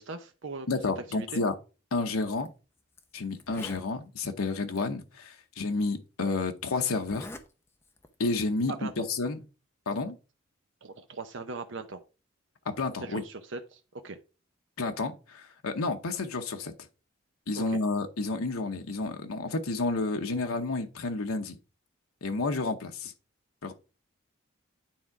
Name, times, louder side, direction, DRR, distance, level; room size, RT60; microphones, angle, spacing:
voice 1, 0.0-0.7 1.0-1.4 8.8-9.1 10.8-12.0 13.0-14.2 17.5-17.8, right 3 dB, 60° right, 0.7 m, -40 dB
voice 2, 0.7-1.5 1.9-2.5 3.1-7.3 8.2-9.4 9.9-10.2 12.8-13.2 14.8-16.7 17.5-21.6 22.2-23.1 23.6-23.7, left 3 dB, 90° left, 0.8 m, -30 dB
Zipper (clothing), 2.3-2.5 3.0-3.1 3.3-3.9 4.7-4.8 5.8-5.9 7.0-7.5 7.8-8.1, left 1 dB, 10° left, 0.6 m, -44 dB
9.3 x 3.6 x 4.7 m
head